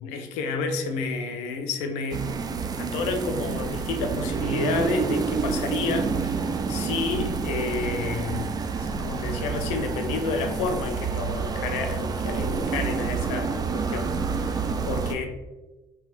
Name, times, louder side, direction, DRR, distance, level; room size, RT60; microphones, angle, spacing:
voice 1, 0.0-2.3 2.7-8.5 8.8-15.3, left 4 dB, 75° left, 5 dB, 0.4 m, -30 dB
sound 1, 2.1-15.1, right 5 dB, 35° right, 0.3 m, -28 dB
3.4 x 2.8 x 2.5 m, 1.1 s
hypercardioid pair, 50°, 12 cm